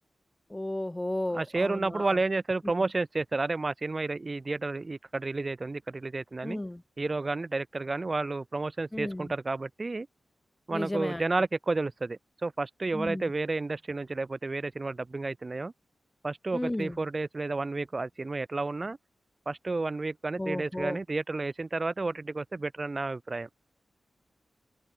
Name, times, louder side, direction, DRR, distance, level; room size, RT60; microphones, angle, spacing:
voice 1, 0.5-2.2 6.4-6.8 8.9-9.3 10.7-11.2 12.9-13.3 16.5-17.0 20.4-21.0, left 1 dB, 10° left, 1.2 m, -34 dB
voice 2, 1.3-6.6 7.0-10.1 10.7-15.7 16.2-19.0 19.5-23.5, right 3 dB, 30° right, 4.1 m, -31 dB
wide cardioid pair, 110°, 0 cm